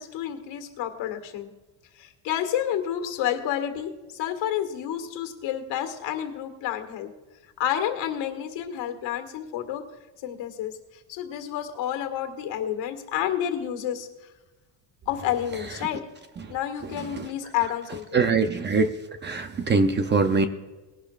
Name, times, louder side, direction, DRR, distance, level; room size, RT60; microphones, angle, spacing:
voice 1, 0.0-1.5 2.0-7.1 7.6-9.8 10.2-10.7 11.1-14.1 15.1-16.0 16.5-18.4, left 10 dB, 75° left, 6 dB, 1.8 m, -30 dB
voice 2, 18.1-18.9 19.2-20.5, right 4 dB, 25° right, 8 dB, 0.6 m, -22 dB
20.0 x 11.5 x 2.4 m, 1.2 s
cardioid pair, 175°, 45 cm